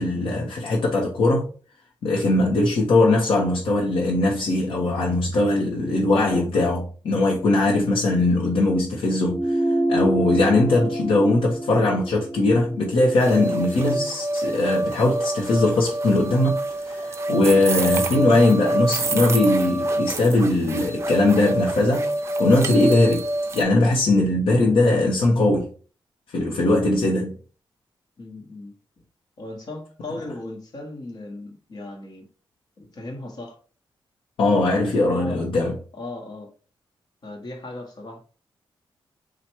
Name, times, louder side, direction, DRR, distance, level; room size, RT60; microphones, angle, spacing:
voice 1, 0.0-1.4 2.0-16.6 16.8-22.1 22.4-23.2 23.5-25.7 26.3-27.3 34.4-35.7, left 2 dB, 80° left, 1.0 m, -20 dB
sound 1, 9.3-14.1, right 1 dB, 15° left, 1.0 m, -27 dB
sound 2, 13.2-23.6, right 1 dB, 30° right, 0.5 m, -26 dB
voice 2, 28.2-29.0 29.4-32.3 32.8-33.6 35.1-35.5 35.9-36.5 37.2-38.2, left 2 dB, 45° left, 1.2 m, -37 dB
4.4 x 2.4 x 4.5 m
wide cardioid pair, 170°, 9 cm